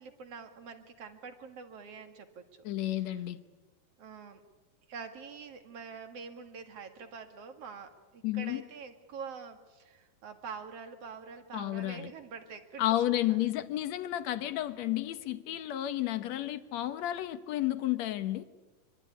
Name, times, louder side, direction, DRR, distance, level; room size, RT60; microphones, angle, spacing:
voice 1, 0.0-2.4 4.0-4.4 4.9-13.0 13.3-13.4, right 5 dB, 45° right, 2.7 m, -45 dB
voice 2, 2.6-3.4 8.2-8.6 11.5-12.1 12.8-18.4, left 14 dB, 65° left, 2.0 m, -31 dB
24.5 x 24.5 x 9.8 m
omnidirectional pair, 4.1 m